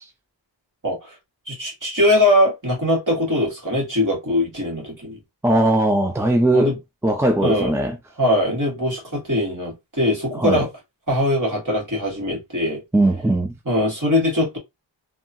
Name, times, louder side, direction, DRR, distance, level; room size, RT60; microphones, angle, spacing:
voice 1, 1.5-5.2 6.5-6.8 7.4-7.7 8.2-10.7 11.1-12.8 13.7-14.6, left 1 dB, 45° right, 1.8 m, -21 dB
voice 2, 5.4-6.7 7.0-8.0 10.4-10.6 12.9-13.5, right 1 dB, 5° right, 0.5 m, -19 dB
3.3 x 2.4 x 2.7 m
wide cardioid pair, 55°, 44 cm